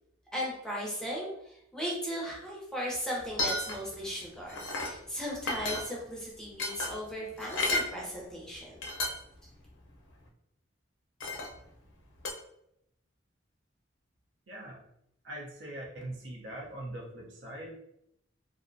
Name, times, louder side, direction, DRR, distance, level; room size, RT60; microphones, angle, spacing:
voice 1, 0.3-8.8, equal, 5° left, -3 dB, 0.5 m, -37 dB
sound 1, 3.2-4.0 4.3-5.0 5.4-6.1 6.6-7.9 8.5-8.6 8.8-9.4 9.8-9.9 11.2-11.6 12.2-12.3, left 2 dB, 70° left, 0.5 m, -32 dB
voice 2, 14.5-14.8 15.2-17.7, right 1 dB, 70° right, -2 dB, 0.7 m, -42 dB
2.5 x 2.1 x 2.5 m, 0.78 s
head